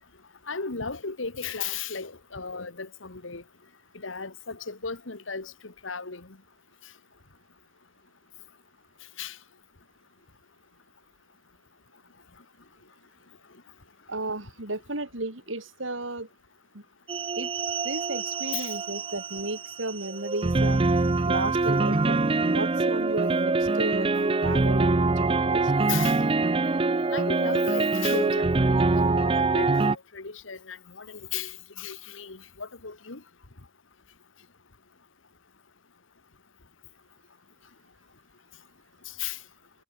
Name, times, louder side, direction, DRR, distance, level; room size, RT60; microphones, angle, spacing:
voice 1, 0.5-3.4 3.9-6.4 9.2-9.4 18.5-18.7 25.9-26.2 27.1-33.2 39.1-39.4, left 5 dB, 75° left, 1.8 m, -36 dB
voice 2, 14.1-16.3 16.7-16.8 17.4-17.5 17.8-20.8 21.2-25.7, right 2 dB, 75° right, 5.4 m, -33 dB
sound 1, 17.1-30.0, right 3 dB, 30° right, 0.6 m, -24 dB
head